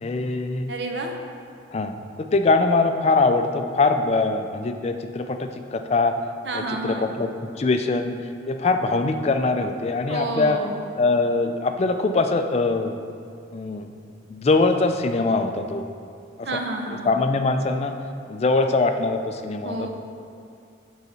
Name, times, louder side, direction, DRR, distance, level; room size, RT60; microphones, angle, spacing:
voice 1, 0.0-0.7 1.7-6.2 6.5-8.1 8.5-10.6 11.0-12.9 13.5-13.9 14.3-15.9 16.4-16.6 17.0-18.0 18.3-19.9, left 3 dB, 35° left, 7 dB, 0.3 m, -22 dB
voice 2, 0.7-1.1 6.4-7.1 10.1-10.8 16.4-17.1 19.6-19.9, right 2 dB, 65° right, 2 dB, 0.8 m, -29 dB
8.3 x 4.0 x 4.2 m, 2.5 s
head